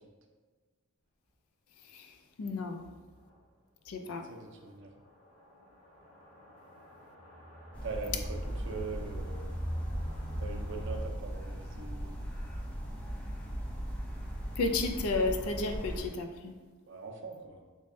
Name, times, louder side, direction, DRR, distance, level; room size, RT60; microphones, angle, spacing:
voice 1, 2.4-2.9 3.9-4.3 14.6-16.5, left 3 dB, 85° left, 5 dB, 0.4 m, -32 dB
sound 1, 2.8-2.9 3.3-3.4 3.9-4.0 4.9-11.0, equal, 40° left, 1.3 m, -42 dB
voice 2, 4.3-4.9 7.8-8.4 8.6-9.5 10.4-12.2 16.9-17.6, right 4 dB, 55° right, 1 dB, 0.5 m, -42 dB
sound 2, 7.7-16.1, equal, 5° left, 0.4 m, -38 dB
3.5 x 3.1 x 2.6 m, 1.4 s
head